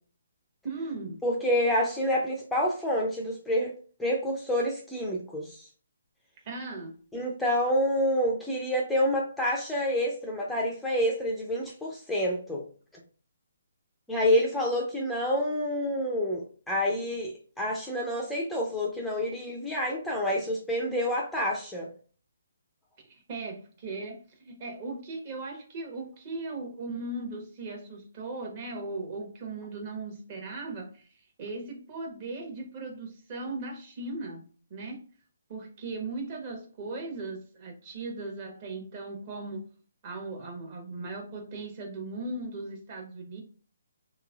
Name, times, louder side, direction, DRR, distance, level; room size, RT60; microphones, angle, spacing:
voice 1, 0.6-1.2 6.5-7.0 23.1-31.1 31.4-34.4 34.7-35.0 35.5-39.6 40.0-43.4, right 3 dB, 35° right, 1 dB, 1.1 m, -38 dB
voice 2, 1.2-3.7 4.0-5.7 7.1-12.6 14.1-21.9, equal, 5° left, -2 dB, 0.5 m, -28 dB
3.4 x 3.0 x 2.3 m, 0.40 s
figure-of-eight pair, 145°, 0 cm